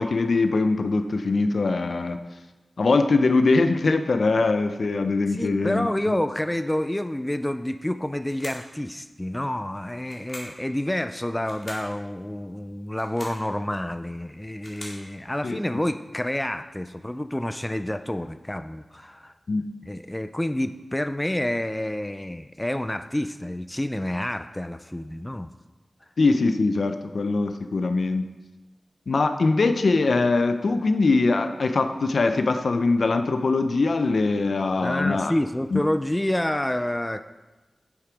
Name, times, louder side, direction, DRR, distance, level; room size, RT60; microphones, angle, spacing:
voice 1, 0.0-2.2 2.8-5.9 15.4-15.8 19.5-19.7 26.2-28.3 29.1-35.3 35.7-35.8, left 3 dB, 70° left, 8 dB, 0.6 m, -22 dB
voice 2, 5.3-19.3 19.8-25.5 34.8-37.2, left 1 dB, 10° left, 10 dB, 0.3 m, -28 dB
sound 1, 8.2-8.7 10.0-10.6 11.4-11.9 12.9-13.4 14.3-15.0, left 1 dB, 40° left, 2.2 m, -42 dB
7.4 x 7.2 x 5.1 m, 1.1 s
wide cardioid pair, 105°, 0 cm